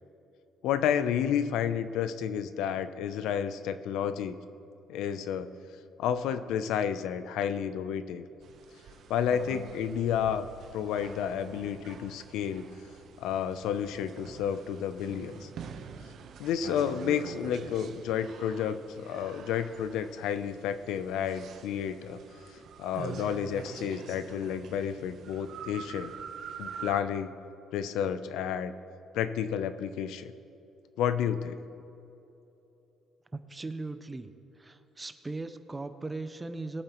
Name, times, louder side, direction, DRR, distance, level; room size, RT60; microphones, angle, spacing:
voice 1, 0.6-4.4 4.9-5.5 6.0-8.2 9.1-10.5 10.7-12.7 13.2-15.5 16.4-22.2 22.8-26.1 26.6-27.3 27.7-28.7 29.1-30.3 31.0-31.6, left 8 dB, 80° left, 12 dB, 0.6 m, -31 dB
sound 1, 8.4-26.9, right 6 dB, 55° right, 0.9 m, -45 dB
voice 2, 33.3-34.3 34.6-36.8, right 3 dB, 15° right, 10 dB, 0.5 m, -38 dB
21.0 x 8.8 x 3.0 m, 2.9 s
cardioid pair, 165°, 0 cm